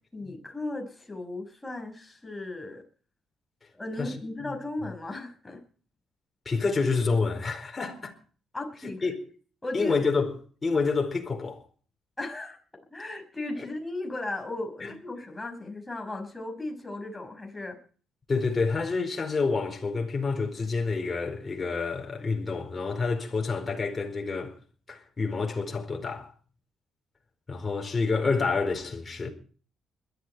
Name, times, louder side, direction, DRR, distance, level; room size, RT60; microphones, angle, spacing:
voice 1, 0.1-2.8 3.7-5.6 8.5-9.1 9.6-10.1 12.2-12.6 12.9-17.8, left 2 dB, 10° left, 5.6 m, -36 dB
voice 2, 6.4-8.1 9.0-9.2 9.7-10.3 10.6-11.6 14.8-14.9 18.3-24.5 24.9-26.3 27.5-29.3, left 4 dB, 30° left, 4.6 m, -28 dB
21.0 x 12.0 x 4.5 m
cardioid pair, 90°, 0 cm